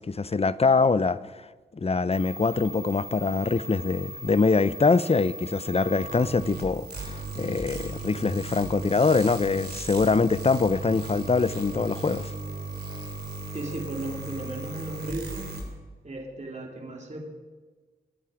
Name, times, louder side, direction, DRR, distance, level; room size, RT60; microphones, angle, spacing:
voice 1, 0.0-1.5 1.7-12.3, left 4 dB, 35° left, 0.7 m, -24 dB
sound 1, 2.1-15.6, right 2 dB, 70° right, 3.1 m, -37 dB
voice 2, 13.5-15.5 16.0-17.2, right 2 dB, 40° right, 3.4 m, -35 dB
24.0 x 8.7 x 5.0 m
cardioid pair, 45°, 18 cm